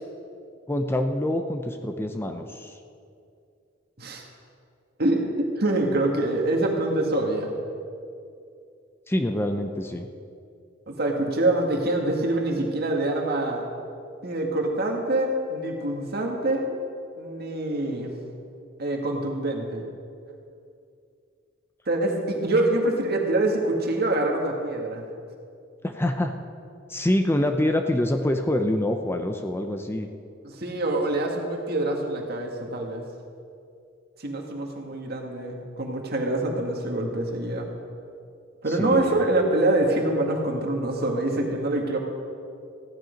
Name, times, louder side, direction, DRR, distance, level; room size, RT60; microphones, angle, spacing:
voice 1, 0.7-2.8 9.1-10.1 25.8-26.3 26.9-30.1 38.7-39.2, left 1 dB, 10° left, 6 dB, 0.6 m, -26 dB
voice 2, 5.0-7.5 10.9-13.6 14.2-16.7 17.2-18.1 18.8-19.9 21.9-25.0 30.4-33.0 34.2-37.7 38.6-42.0, right 2 dB, 55° right, 1 dB, 1.9 m, -25 dB
15.5 x 10.5 x 5.2 m, 2.5 s
head